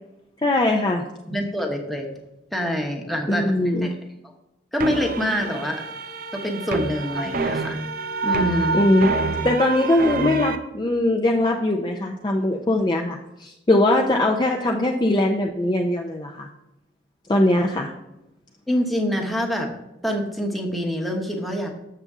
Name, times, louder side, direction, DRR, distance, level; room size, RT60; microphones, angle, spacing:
voice 1, 0.4-1.0 3.3-3.9 8.7-9.2 9.4-16.5 17.3-17.9, left 1 dB, 25° left, 2 dB, 0.4 m, -21 dB
voice 2, 1.3-2.1 2.5-3.5 3.8-3.9 4.7-5.8 6.3-7.8 8.2-8.8 18.7-19.7 20.0-21.7, equal, ahead, 0 dB, 0.9 m, -25 dB
sound 1, 4.8-10.6, right 3 dB, 50° right, 0.5 m, -27 dB
7.1 x 6.7 x 3.6 m, 0.90 s
head